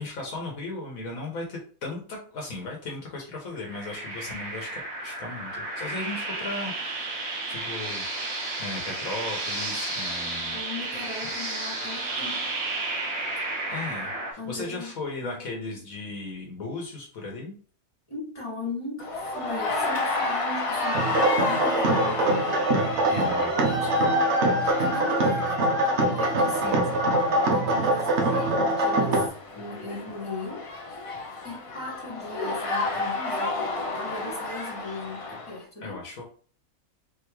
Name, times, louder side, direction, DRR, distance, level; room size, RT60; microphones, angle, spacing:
voice 1, 0.0-8.0 8.6-10.6 11.2-11.3 13.7-17.6 23.1-24.0 26.6-26.9 28.2-28.5 35.8-36.2, left 3 dB, 75° left, 1.5 m, -36 dB
sound 1, 3.5-14.3, right 2 dB, 75° right, 1.9 m, -32 dB
voice 2, 10.5-12.5 14.4-14.9 15.2-15.6 18.1-24.3 24.6-25.6 26.1-31.0 31.4-33.6 33.9-36.0, left 2 dB, 20° left, 2.0 m, -38 dB
sound 2, 19.0-35.6, left 3 dB, 50° left, 0.4 m, -32 dB
sound 3, 20.9-29.3, right 1 dB, 60° right, 1.0 m, -23 dB
4.2 x 3.5 x 3.1 m
omnidirectional pair, 1.5 m